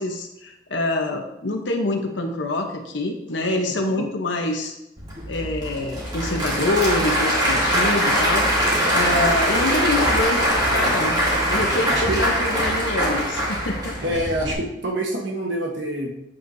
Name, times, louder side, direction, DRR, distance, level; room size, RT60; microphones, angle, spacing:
voice 1, 0.0-4.7 5.3-11.2 11.5-13.9, left 2 dB, 90° left, 2 dB, 1.0 m, -25 dB
Applause / Crowd, 5.0-14.5, equal, 25° right, 2.0 m, -22 dB
voice 2, 11.9-12.2 14.0-16.1, right 1 dB, 85° right, 0 dB, 1.3 m, -26 dB
8.5 x 8.0 x 2.7 m, 0.87 s
head